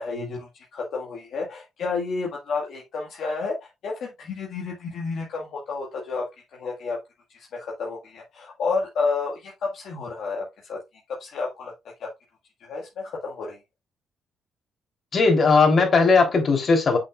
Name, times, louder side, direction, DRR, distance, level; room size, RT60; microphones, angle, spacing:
voice 1, 0.0-6.2 6.5-7.0 7.3-10.8 11.2-11.7 12.0-12.1 12.6-13.6, left 4 dB, 70° left, 1.8 m, -31 dB
voice 2, 15.1-17.0, left 4 dB, 45° left, 3.4 m, -18 dB
7.5 x 5.9 x 2.4 m
cardioid pair, 90°, 0 cm